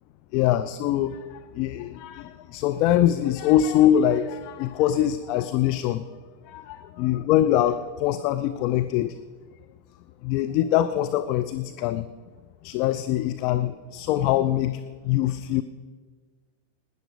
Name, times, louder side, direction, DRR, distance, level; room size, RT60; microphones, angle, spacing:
voice 1, 0.3-1.2 1.5-6.0 6.5-9.1 10.2-12.0 12.6-14.8 15.0-15.6, left 11 dB, 40° left, 10 dB, 0.5 m, -23 dB
17.0 x 10.5 x 5.1 m, 1.5 s
figure-of-eight pair, 90°, 0 cm